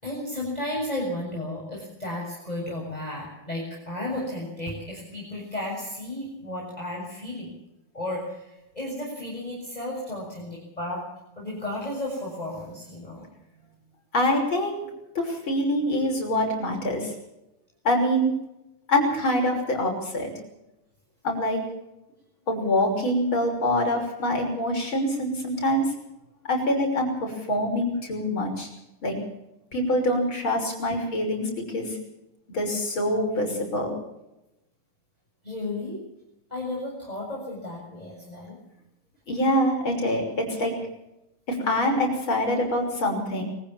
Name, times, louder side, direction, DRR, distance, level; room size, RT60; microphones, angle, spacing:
voice 1, 0.0-7.5 7.9-11.0 11.4-13.2 35.4-36.0 36.5-38.6, left 1 dB, 10° left, -4 dB, 6.8 m, -33 dB
voice 2, 14.1-14.9 15.1-17.1 17.8-18.3 18.9-20.3 21.2-21.6 22.5-25.8 26.5-28.7 29.0-29.2 29.7-32.0 32.5-34.0 39.3-40.7 41.5-43.4, left 1 dB, 35° left, 2 dB, 6.6 m, -25 dB
23.5 x 15.0 x 7.3 m, 0.89 s
omnidirectional pair, 4.1 m